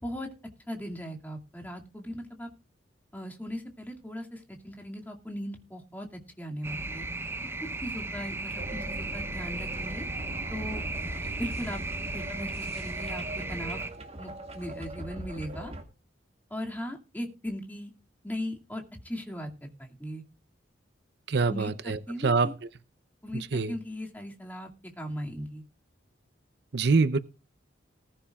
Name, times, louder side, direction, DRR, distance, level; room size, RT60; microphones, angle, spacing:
voice 1, 0.7-2.5 3.1-7.1 7.8-10.0 10.5-10.8 11.4-11.8 12.1-13.8 14.2-15.7 16.5-17.9 18.2-20.2 21.3-22.5 23.2-24.7 25.0-25.6, equal, 10° left, 2.2 m, -38 dB
sound 1, 6.6-13.9, right 2 dB, 15° right, 0.6 m, -36 dB
sound 2, 8.6-15.8, right 1 dB, 35° right, 2.0 m, -40 dB
voice 2, 21.3-22.5 23.3-23.7 26.7-27.2, right 4 dB, 60° right, 0.6 m, -25 dB
19.5 x 10.0 x 2.4 m
head